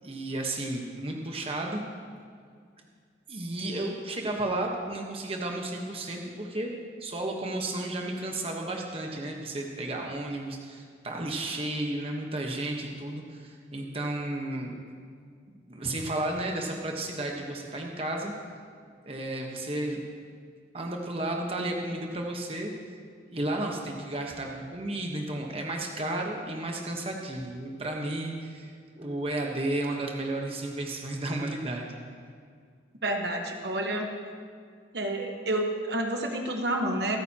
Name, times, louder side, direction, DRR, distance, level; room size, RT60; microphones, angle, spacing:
voice 1, 0.0-1.8 3.3-6.7 7.0-14.7 15.7-18.3 19.0-20.0 20.7-22.7 23.3-28.7 29.0-31.9, right 1 dB, 30° right, 1 dB, 1.1 m, -33 dB
voice 2, 33.0-34.1 34.9-37.2, right 1 dB, 60° right, 3 dB, 1.2 m, -29 dB
26.0 x 9.2 x 2.9 m, 2.1 s
head